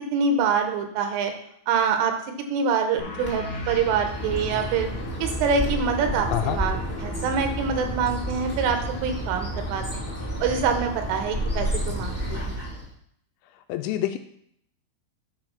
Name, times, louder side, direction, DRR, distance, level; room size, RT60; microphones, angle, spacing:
voice 1, 0.1-1.3 1.7-2.1 2.5-4.9 5.2-10.0 10.4-12.7, right 6 dB, 80° right, 5 dB, 3.4 m, -25 dB
sound 1, 3.0-8.2, left 3 dB, 50° left, 2.4 m, -41 dB
Bird, 3.2-12.9, equal, 15° left, 0.4 m, -30 dB
voice 2, 13.7-14.2, left 12 dB, 85° left, 7 dB, 2.9 m, -26 dB
9.1 x 5.1 x 5.8 m, 0.70 s
omnidirectional pair, 5.8 m